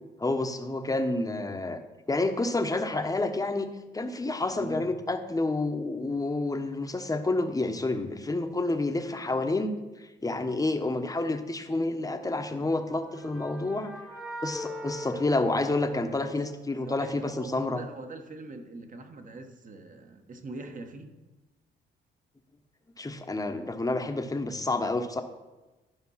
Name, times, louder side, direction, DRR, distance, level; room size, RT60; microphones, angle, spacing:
voice 1, 0.2-1.8 2.1-3.7 3.9-13.9 14.4-17.8 23.0-25.2, left 2 dB, 15° left, 7 dB, 1.0 m, -29 dB
voice 2, 4.6-4.9 16.2-16.3 16.8-21.1, right 2 dB, 40° right, 5 dB, 1.4 m, -42 dB
sound 1, 12.6-16.5, equal, 5° right, 1.3 m, -41 dB
12.0 x 5.4 x 5.7 m, 1.1 s
cardioid pair, 90°, 20 cm